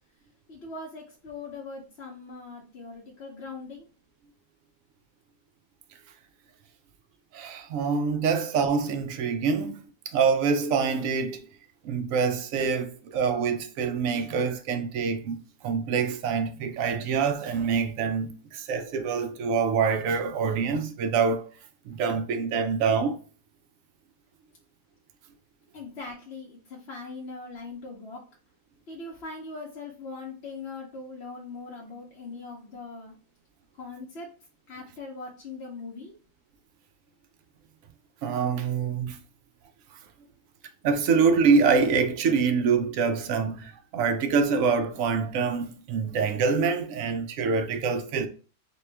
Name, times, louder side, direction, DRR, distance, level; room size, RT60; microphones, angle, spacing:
voice 1, 0.5-3.9 25.7-28.2 28.9-33.1 33.8-34.3 34.7-36.1, left 3 dB, 55° left, 0.7 m, -40 dB
voice 2, 7.3-11.4 11.8-15.4 15.6-21.5 21.9-23.2 38.2-39.2 40.8-48.3, right 5 dB, 70° right, 0.8 m, -25 dB
4.3 x 2.2 x 3.2 m
omnidirectional pair, 1.8 m